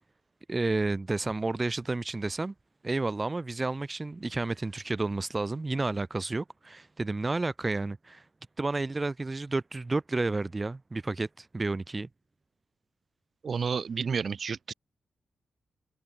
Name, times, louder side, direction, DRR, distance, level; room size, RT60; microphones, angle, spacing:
voice 1, 0.5-2.5 2.8-8.2 8.6-12.1, right 3 dB, 20° right, 3.2 m, -31 dB
voice 2, 13.4-14.7, right 6 dB, 45° right, 3.2 m, -30 dB
wide cardioid pair, 165°, 0 cm